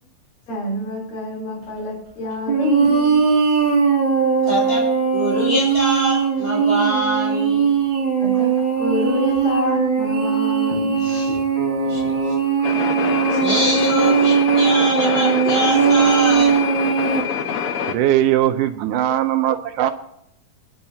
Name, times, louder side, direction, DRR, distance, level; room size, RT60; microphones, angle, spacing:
voice 1, 0.5-3.2 8.1-11.4, left 1 dB, 75° left, -1 dB, 5.1 m, -27 dB
sound 1, 2.5-17.2, right 6 dB, 35° right, 2.6 m, -19 dB
voice 2, 4.4-4.8 5.1-7.6 11.8-12.3 13.3-16.6, equal, 15° left, -2 dB, 6.2 m, -24 dB
sound 2, 12.6-17.9, left 7 dB, 60° left, 1.6 m, -25 dB
voice 3, 17.7-19.9, right 12 dB, 80° right, 8 dB, 2.1 m, -20 dB
28.5 x 10.5 x 2.8 m, 0.79 s
omnidirectional pair, 3.9 m